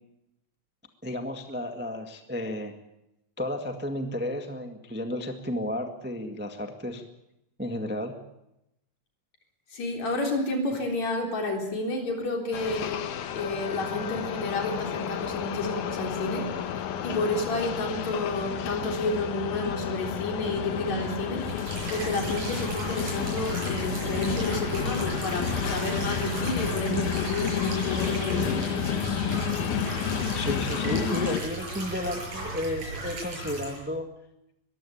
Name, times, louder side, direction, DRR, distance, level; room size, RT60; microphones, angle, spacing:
voice 1, 1.0-2.8 3.4-7.0 7.6-8.2 30.3-34.1, left 1 dB, 5° right, 5 dB, 0.7 m, -32 dB
voice 2, 9.7-13.0 13.3-16.5 16.7-21.4 21.9-28.7, left 2 dB, 60° left, 2 dB, 5.0 m, -30 dB
sound 1, 12.5-31.4, left 8 dB, 75° left, 2.6 m, -31 dB
sound 2, 21.4-33.8, right 3 dB, 60° right, 8.2 m, -36 dB
22.0 x 15.5 x 8.6 m, 0.85 s
omnidirectional pair, 3.6 m